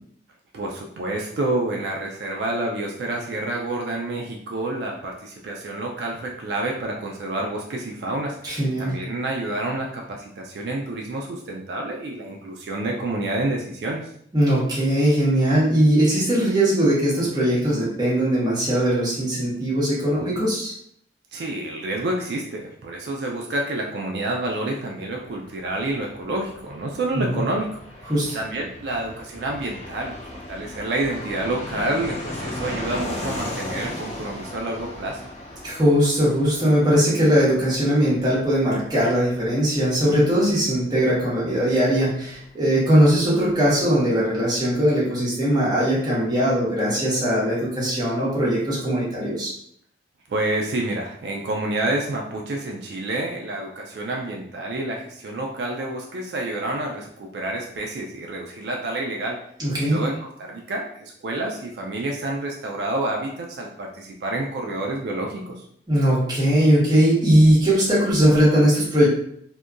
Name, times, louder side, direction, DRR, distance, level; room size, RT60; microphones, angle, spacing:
voice 1, 0.5-8.4 8.8-14.1 21.3-30.2 30.5-35.2 50.3-59.4 59.9-65.6, right 2 dB, 75° right, 0 dB, 0.3 m, -28 dB
voice 2, 8.4-8.9 14.3-20.7 27.1-27.4 28.0-28.4 35.6-49.5 59.6-60.0 65.9-69.1, equal, 25° right, -7 dB, 0.9 m, -20 dB
Fixed-wing aircraft airplane, 25.2-43.5 43.8-43.9 44.1-44.8, left 1 dB, 40° left, 0.5 m, -37 dB
2.7 x 2.2 x 2.4 m, 0.67 s
head